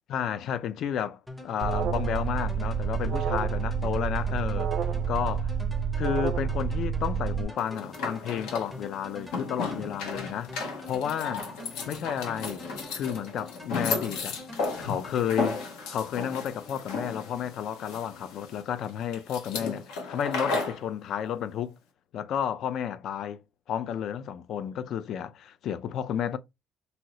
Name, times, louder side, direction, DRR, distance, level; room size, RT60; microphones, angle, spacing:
voice 1, 0.1-4.8 5.1-5.5 6.0-10.5 10.8-11.5 11.9-12.7 12.9-14.4 14.8-15.6 15.9-21.7 22.1-23.4 23.7-26.4, left 9 dB, 55° left, 0.3 m, -32 dB
sound 1, 1.3-16.3, left 1 dB, ahead, 0.5 m, -46 dB
Alarm, 1.6-7.4, right 6 dB, 55° right, 0.4 m, -28 dB
sound 2, 7.6-20.8, left 4 dB, 90° left, 1.0 m, -35 dB
2.8 x 2.7 x 2.9 m
cardioid pair, 145°, 0 cm